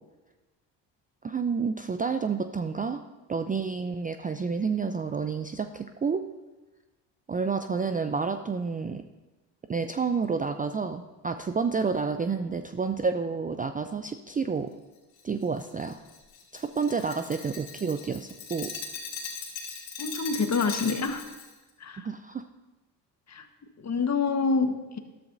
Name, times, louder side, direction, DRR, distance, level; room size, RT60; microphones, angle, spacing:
voice 1, 1.2-3.0 3.3-6.2 7.3-9.0 9.7-14.7 15.2-16.0 16.5-18.7 22.0-22.5, right 5 dB, 20° right, 9 dB, 0.4 m, -29 dB
Glass, 15.2-21.5, left 5 dB, 60° left, 2.3 m, -39 dB
voice 2, 20.0-21.2 21.8-22.1 23.3-23.4 23.8-25.0, left 4 dB, 35° left, 7 dB, 1.2 m, -27 dB
13.0 x 12.0 x 2.6 m, 1.2 s
hypercardioid pair, 55°, 49 cm